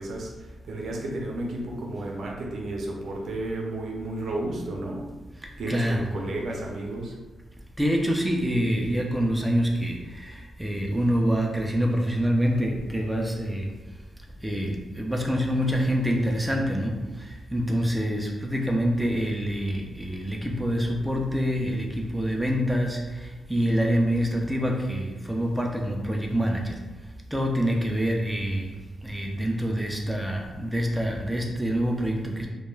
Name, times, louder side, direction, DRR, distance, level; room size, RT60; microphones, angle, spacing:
voice 1, 0.0-5.1 5.6-7.2, right 1 dB, 70° right, -1 dB, 0.5 m, -32 dB
voice 2, 5.7-6.0 7.8-13.7 14.4-16.9 17.2-26.8 27.3-28.7 29.0-32.5, equal, 5° right, 0 dB, 0.4 m, -26 dB
2.2 x 2.2 x 3.1 m, 1.2 s
cardioid pair, 105°, 0 cm